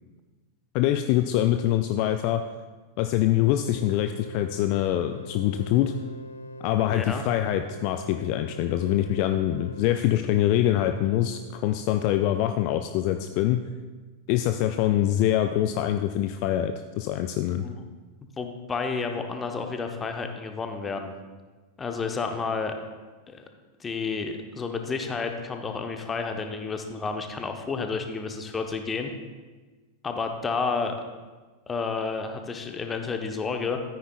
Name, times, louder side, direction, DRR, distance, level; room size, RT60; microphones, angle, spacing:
voice 1, 0.7-2.4 3.0-5.9 6.6-13.6 14.3-17.7, left 12 dB, 45° left, 8 dB, 0.4 m, -24 dB
sound 1, 3.6-10.0, equal, 90° right, 0.9 m, -41 dB
voice 2, 6.9-7.2 17.6-17.8 18.4-21.1 21.8-22.7 23.3-23.4 23.8-29.1 30.0-30.9 31.7-33.8, left 4 dB, 20° left, 5 dB, 0.9 m, -30 dB
13.5 x 9.3 x 2.4 m, 1.3 s
figure-of-eight pair, 90°, 0 cm